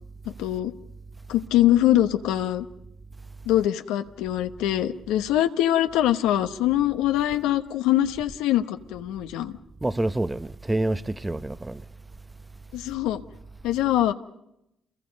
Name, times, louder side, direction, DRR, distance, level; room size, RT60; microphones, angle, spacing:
voice 1, 0.3-0.7 1.3-2.7 3.5-9.6 12.7-13.2 13.6-14.1, left 13 dB, 85° left, 1.1 m, -23 dB
voice 2, 9.8-11.8, right 1 dB, 15° right, 0.8 m, -27 dB
28.5 x 22.0 x 5.3 m
supercardioid pair, 60°, 0 cm